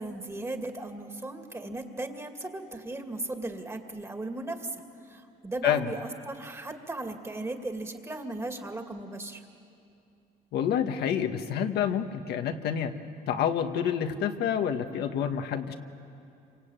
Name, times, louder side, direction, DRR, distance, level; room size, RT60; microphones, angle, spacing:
voice 1, 0.0-4.7 5.0-9.4, right 2 dB, 15° right, 5 dB, 2.4 m, -37 dB
voice 2, 10.5-12.9 13.3-15.7, left 8 dB, 75° left, 6 dB, 1.4 m, -28 dB
27.0 x 24.5 x 9.0 m, 2.5 s
cardioid pair, 110°, 17 cm